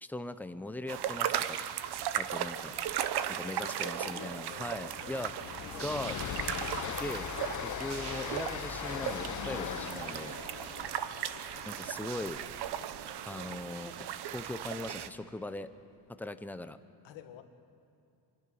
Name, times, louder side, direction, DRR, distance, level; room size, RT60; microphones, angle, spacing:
voice 1, 0.0-1.6 2.2-2.7 3.4-5.3 5.8-6.2 7.0-7.3 7.6-10.4 11.6-12.4 13.2-14.1 14.3-15.7 16.2-16.8, left 2 dB, 5° left, 11 dB, 0.5 m, -40 dB
sound 1, 0.9-15.1, right 10 dB, 60° right, 0.9 m, -37 dB
Train, 2.6-2.9 3.2-3.3 3.7-13.9, left 9 dB, 40° left, 0.8 m, -41 dB
voice 2, 3.2-5.9 10.6-10.9 17.0-17.4, left 10 dB, 75° left, 7 dB, 1.6 m, -50 dB
25.5 x 11.0 x 9.8 m, 2.5 s
cardioid pair, 140°, 44 cm